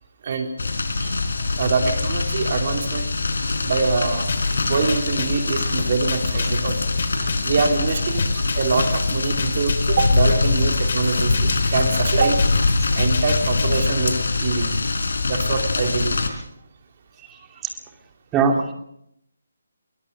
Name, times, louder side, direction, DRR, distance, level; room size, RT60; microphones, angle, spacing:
sound 1, 0.6-16.3, left 3 dB, 70° left, 4.0 m, -23 dB
voice 1, 1.6-3.1 3.6-4.3 4.7-6.8 7.4-12.4 12.9-14.2 14.4-14.7 15.3-16.1, right 4 dB, 45° right, 5 dB, 2.9 m, -24 dB
sound 2, 4.3-13.9, left 3 dB, 55° left, 2.9 m, -29 dB
voice 2, 17.3-17.7 18.3-18.7, right 5 dB, 15° right, 4 dB, 2.7 m, -22 dB
22.5 x 17.5 x 6.7 m, 0.75 s
figure-of-eight pair, 155°, 0 cm